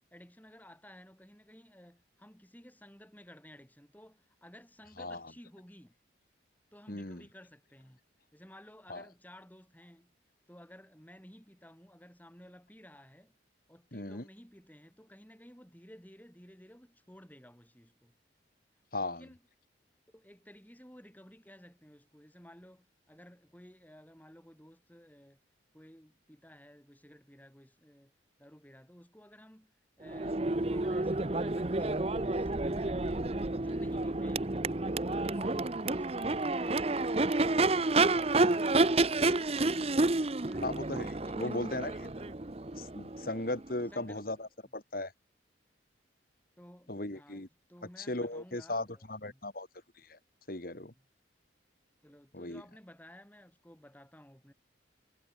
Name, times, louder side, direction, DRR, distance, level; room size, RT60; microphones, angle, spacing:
voice 1, 0.1-6.0 6.7-8.0 8.3-10.1 10.5-13.3 13.7-18.1 19.0-19.4 20.1-25.4 25.7-28.1 28.4-37.4 37.7-40.7 41.1-42.5 43.9-44.2 46.6-49.4 50.9-51.0 52.0-54.5, equal, 10° left, 6.2 m, -55 dB
voice 2, 5.0-5.3 6.9-7.2 8.9-9.0 13.9-14.2 18.9-19.3 40.6-42.1 42.7-45.1 46.9-47.5 48.0-49.7 50.0-50.2 50.5-50.9 52.3-52.6, left 2 dB, 50° left, 2.2 m, -37 dB
Crowd / Race car auto racing / Accelerating revving vroom, 30.0-43.9, right 2 dB, 30° right, 0.9 m, -30 dB
head